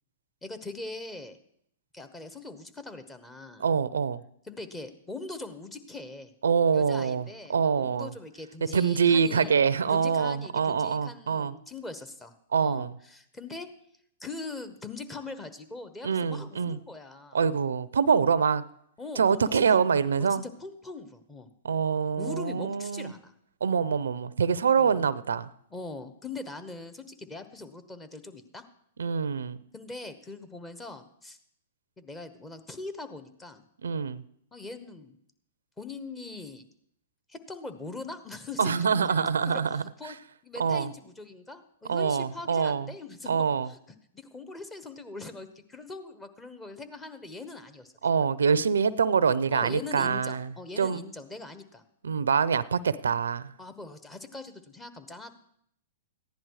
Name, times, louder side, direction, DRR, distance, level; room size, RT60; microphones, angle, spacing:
voice 1, 0.4-1.4 1.9-3.7 4.5-6.3 6.7-9.5 9.9-13.7 14.2-17.4 19.0-19.8 20.2-21.5 22.2-23.3 24.7-25.0 25.7-28.6 29.7-31.4 32.0-33.6 34.5-35.2 35.8-36.6 37.3-40.1 40.4-43.8 44.1-47.9 49.5-51.8 53.6-55.3, left 3 dB, 15° left, 1.3 m, -41 dB
voice 2, 3.6-4.2 6.4-8.1 8.7-11.5 12.5-12.9 16.0-16.8 17.3-18.6 19.2-20.4 21.6-23.1 23.6-25.5 29.0-29.6 33.8-34.2 38.6-40.1 40.6-40.9 41.9-42.9 43.3-43.7 48.0-51.0 52.0-53.5, right 6 dB, 85° right, 0.6 m, -25 dB
14.5 x 10.5 x 4.8 m
hypercardioid pair, 125°, 0 cm